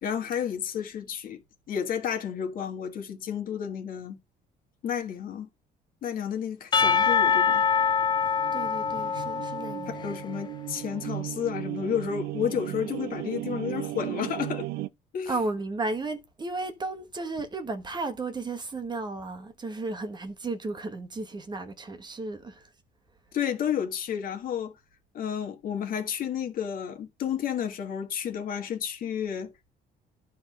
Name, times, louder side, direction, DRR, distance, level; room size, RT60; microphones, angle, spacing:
voice 1, 0.0-1.4 1.7-4.2 4.8-5.5 6.0-7.7 9.9-14.7 15.1-15.3 23.3-24.8 25.1-29.5, left 8 dB, 55° left, 1.7 m, -31 dB
Percussion / Church bell, 6.7-10.4, left 6 dB, 25° left, 0.5 m, -25 dB
sound 1, 8.1-14.9, right 16 dB, 80° right, 0.5 m, -36 dB
voice 2, 8.5-9.9 15.3-22.7, right 3 dB, 25° right, 1.2 m, -34 dB
10.5 x 3.5 x 6.6 m
cardioid pair, 110°, 17 cm